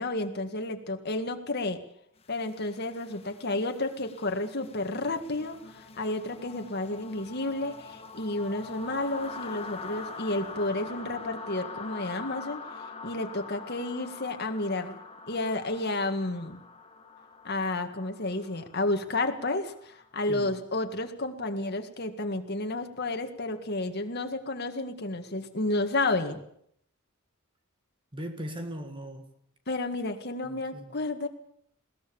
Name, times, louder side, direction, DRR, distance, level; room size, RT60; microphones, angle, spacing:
voice 1, 0.0-1.8 2.3-12.6 13.0-15.0 15.3-16.6 17.4-26.4 29.7-31.3, left 2 dB, 50° left, 1.9 m, -31 dB
sound 1, 2.3-20.1, left 4 dB, 30° left, 1.5 m, -44 dB
voice 2, 28.1-29.3 30.4-30.9, equal, 25° right, 1.8 m, -39 dB
21.0 x 18.0 x 7.1 m
head